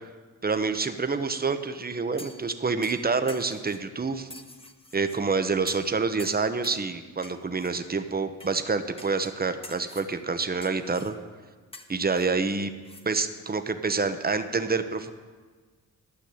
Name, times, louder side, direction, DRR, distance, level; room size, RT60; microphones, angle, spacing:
voice 1, 0.4-4.3 4.9-11.2 11.9-12.7 13.0-15.1, right 4 dB, 25° right, 9 dB, 0.9 m, -27 dB
sound 1, 2.2-2.5 2.8-3.8 4.3-5.2 5.7-5.9 6.2-6.8 7.2-7.7 8.4-8.6 9.0-9.3 9.6-10.1 10.6-11.1 11.7-13.1 13.4-13.5, left 2 dB, 15° left, 1.3 m, -46 dB
12.0 x 6.0 x 8.5 m, 1.5 s
supercardioid pair, 50°, 36 cm